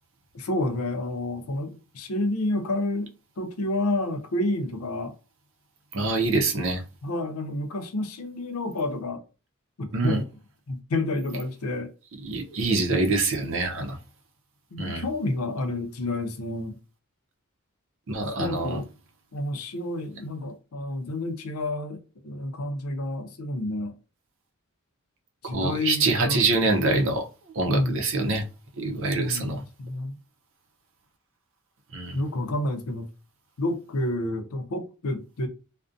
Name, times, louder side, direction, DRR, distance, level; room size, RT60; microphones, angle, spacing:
voice 1, 0.3-3.1 3.4-5.1 7.0-9.2 9.8-10.3 10.7-11.9 14.7-16.8 18.4-18.9 19.3-23.9 25.4-27.1 27.7-28.0 29.2-30.2 32.1-33.1 33.6-35.5, left 1 dB, 85° left, 0.5 m, -29 dB
voice 2, 5.9-6.8 9.9-10.2 12.2-14.0 14.8-15.0 18.1-18.8 25.4-27.3 27.5-28.5 28.8-29.6 31.9-32.2, right 3 dB, 65° right, 0.5 m, -25 dB
2.4 x 2.1 x 2.5 m
head